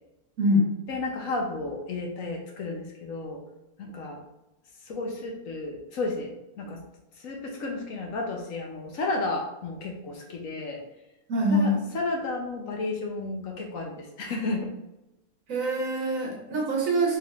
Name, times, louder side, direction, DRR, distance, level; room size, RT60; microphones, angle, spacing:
voice 1, 0.4-0.7 11.3-11.8 15.5-17.2, equal, 65° right, 0 dB, 1.3 m, -24 dB
voice 2, 0.9-3.4 3.8-4.2 4.8-6.8 7.2-10.8 11.5-14.7, left 2 dB, 65° left, 1 dB, 1.0 m, -32 dB
4.6 x 3.6 x 2.4 m, 0.94 s
omnidirectional pair, 1.6 m